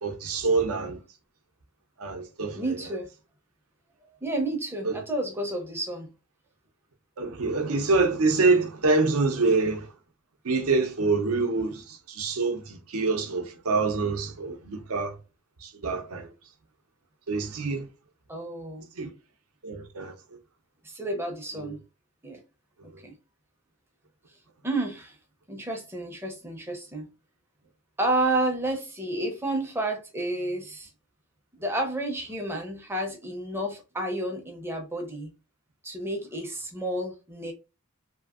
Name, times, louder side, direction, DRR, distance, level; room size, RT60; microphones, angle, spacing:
voice 1, 0.0-1.0 2.0-2.6 4.8-4.9 7.2-9.9 10.4-11.8 12.1-15.1 15.6-16.3 17.3-17.9 19.0-19.1 19.6-20.1, right 3 dB, 75° right, 0.6 m, -25 dB
voice 2, 2.5-3.1 4.2-6.1 18.3-18.9 20.8-21.8 22.2-22.4 23.0-23.1 24.6-25.2 25.5-27.1 28.0-30.9 31.6-35.3 35.8-37.5, right 1 dB, 10° right, 0.5 m, -30 dB
2.7 x 2.5 x 2.4 m
head